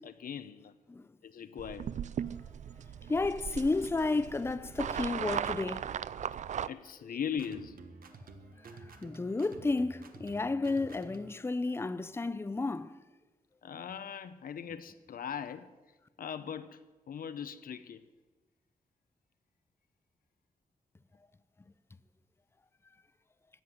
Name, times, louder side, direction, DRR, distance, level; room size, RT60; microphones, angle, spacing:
voice 1, 0.0-0.7 1.2-1.9 6.7-7.8 13.6-15.7 16.2-16.8 17.1-18.0, left 8 dB, 80° left, 0.8 m, -40 dB
sound 1, 1.6-6.7, right 8 dB, 55° right, 0.4 m, -37 dB
voice 2, 3.1-5.9 8.7-12.9, left 3 dB, 15° left, 0.5 m, -32 dB
sound 2, 7.3-11.4, right 3 dB, 80° right, 1.4 m, -51 dB
14.0 x 7.9 x 9.9 m
wide cardioid pair, 140°, 15 cm